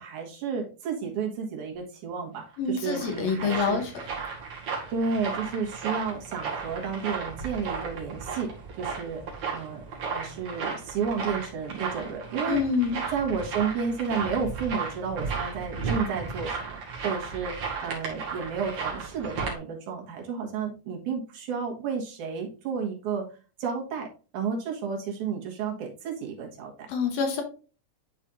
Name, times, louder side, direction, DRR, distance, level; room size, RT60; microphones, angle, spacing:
voice 1, 0.0-3.8 4.9-8.5 8.8-9.2 9.5-12.6 13.1-17.5 17.8-23.3 23.6-24.1 24.3-26.9, right 6 dB, 75° right, 0 dB, 2.9 m, -32 dB
sound 1, 2.5-19.6, right 5 dB, 50° right, 2.7 m, -34 dB
voice 2, 2.6-3.9 12.5-13.0 26.9-27.4, left 5 dB, 70° left, 5 dB, 2.0 m, -26 dB
10.5 x 4.1 x 2.5 m, 0.36 s
omnidirectional pair, 3.6 m